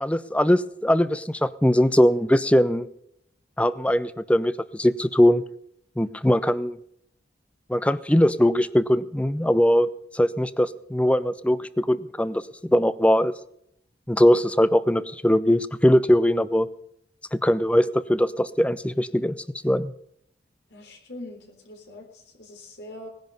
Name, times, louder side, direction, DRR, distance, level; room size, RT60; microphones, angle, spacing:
voice 1, 0.0-2.9 3.6-5.4 6.0-6.8 7.7-12.4 12.7-13.3 14.1-16.7 17.3-19.4 19.6-19.9, equal, 5° left, 16 dB, 0.6 m, -21 dB
voice 2, 20.7-23.1, left 1 dB, 75° left, 2 dB, 3.6 m, -42 dB
19.0 x 10.5 x 5.4 m, 0.71 s
head